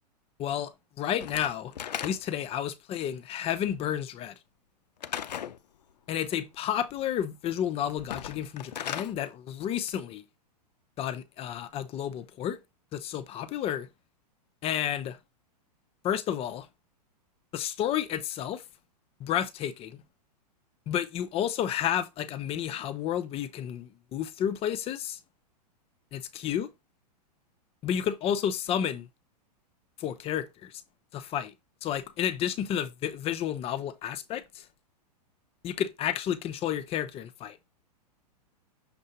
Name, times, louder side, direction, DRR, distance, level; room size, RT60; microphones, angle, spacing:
voice 1, 0.4-1.7 2.0-4.3 6.1-10.2 11.0-12.6 12.9-13.9 14.6-15.2 16.0-16.7 17.5-18.6 19.2-20.0 20.9-25.2 26.1-26.7 27.8-29.1 30.0-30.8 31.1-31.5 31.8-34.6 35.6-37.7, left 10 dB, 30° left, 0.7 m, -31 dB
Slam / Wood, 1.2-2.5 5.0-5.6 8.0-9.1, left 9 dB, 90° left, 0.5 m, -36 dB
6.8 x 2.7 x 5.4 m
hypercardioid pair, 120°, 21 cm